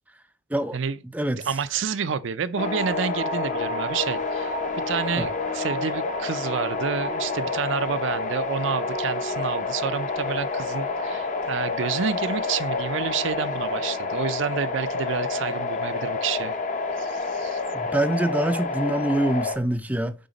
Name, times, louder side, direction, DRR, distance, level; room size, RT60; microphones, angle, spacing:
voice 1, 1.5-4.5 4.9-16.6 17.0-17.6, right 6 dB, 70° right, 0.5 m, -29 dB
sound 1, 2.6-19.6, left 3 dB, 40° left, 0.7 m, -28 dB
voice 2, 17.7-20.1, right 1 dB, 5° right, 0.4 m, -25 dB
9.2 x 3.9 x 3.9 m
head